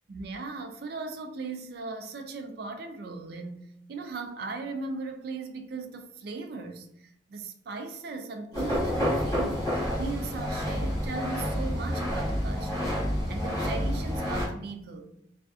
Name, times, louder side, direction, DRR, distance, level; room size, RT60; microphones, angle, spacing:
voice 1, 0.1-9.7 9.9-13.0 13.3-15.1, right 3 dB, 55° right, 0.3 m, -38 dB
sound 1, 8.5-14.5, equal, 20° left, 0.9 m, -29 dB
2.4 x 2.4 x 2.3 m
head